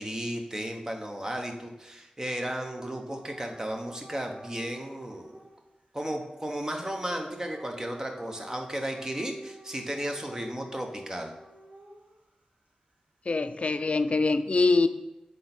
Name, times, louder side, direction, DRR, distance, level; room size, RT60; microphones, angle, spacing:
voice 1, 0.0-5.5 5.9-11.3, right 1 dB, 25° right, 3 dB, 0.9 m, -34 dB
Dog / Siren, 2.3-5.6 7.0-12.2 13.8-14.1, right 1 dB, 85° right, 1.1 m, -49 dB
voice 2, 13.3-14.9, left 3 dB, 55° left, 11 dB, 0.4 m, -24 dB
8.2 x 3.4 x 4.3 m, 0.99 s
wide cardioid pair, 75°, 3 cm